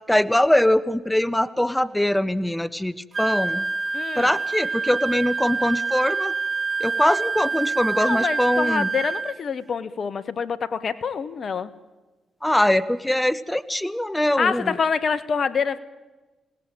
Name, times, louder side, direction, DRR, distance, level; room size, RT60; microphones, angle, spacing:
voice 1, 0.1-3.7 4.2-6.3 6.8-8.9 12.4-14.7, left 1 dB, 10° left, 15 dB, 1.0 m, -22 dB
Wind instrument woodwind instrument, 3.1-9.4, right 4 dB, 35° right, 1.8 m, -26 dB
voice 2, 3.9-4.3 8.0-11.7 14.4-15.8, left 6 dB, 55° left, 14 dB, 1.4 m, -26 dB
27.5 x 18.0 x 9.0 m, 1.2 s
hypercardioid pair, 45°, 0 cm